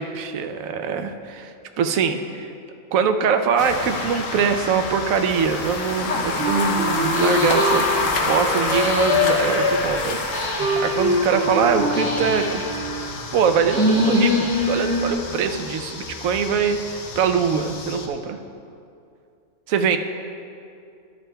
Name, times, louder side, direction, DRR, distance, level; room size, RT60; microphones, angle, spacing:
voice 1, 0.0-2.5 2.9-12.6 13.3-18.4 19.7-20.0, right 6 dB, 85° right, 7 dB, 1.1 m, -23 dB
sound 1, 3.6-18.1, left 3 dB, 75° left, 1.2 m, -28 dB
Wind instrument woodwind instrument, 6.4-12.7, left 1 dB, 65° right, 2.9 m, -24 dB
sound 2, 7.1-15.1, left 1 dB, 20° left, 0.7 m, -27 dB
13.0 x 11.0 x 2.3 m, 2.5 s
omnidirectional pair, 1.4 m